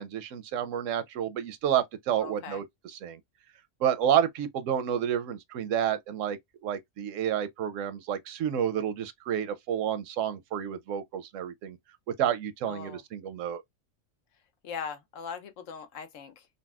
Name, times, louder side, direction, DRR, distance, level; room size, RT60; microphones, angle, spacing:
voice 1, 0.0-3.2 3.8-11.8 12.1-13.6, right 9 dB, 85° right, 0.9 m, -30 dB
voice 2, 2.2-2.6 12.7-13.0 14.6-16.5, left 6 dB, 85° left, 1.1 m, -40 dB
4.0 x 2.1 x 2.2 m
omnidirectional pair, 1.3 m